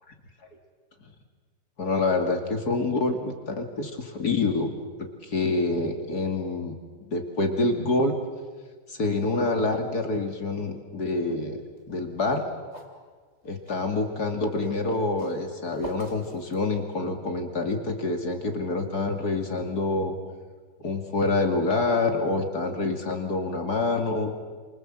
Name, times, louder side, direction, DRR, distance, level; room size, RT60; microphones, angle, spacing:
voice 1, 1.8-4.7 5.0-6.8 7.1-8.2 8.9-11.6 11.9-12.5 13.4-20.2 20.8-24.3, left 3 dB, 65° left, 5 dB, 2.8 m, -27 dB
sound 1, 11.7-13.9 14.8-17.2, equal, 20° right, 3.8 m, -47 dB
29.0 x 27.0 x 7.6 m, 1.5 s
omnidirectional pair, 1.8 m